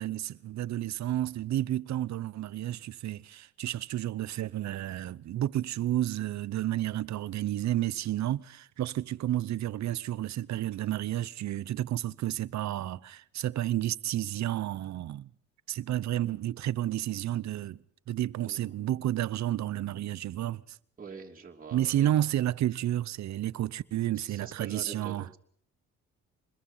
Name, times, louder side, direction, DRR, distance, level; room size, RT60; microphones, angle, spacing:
voice 1, 0.0-15.3 15.7-17.8 18.1-20.8 21.7-25.3, right 13 dB, 65° right, 0.8 m, -31 dB
voice 2, 21.0-22.2 24.2-25.4, right 5 dB, 30° right, 3.0 m, -45 dB
26.0 x 21.5 x 5.7 m
cardioid pair, 90°, 30 cm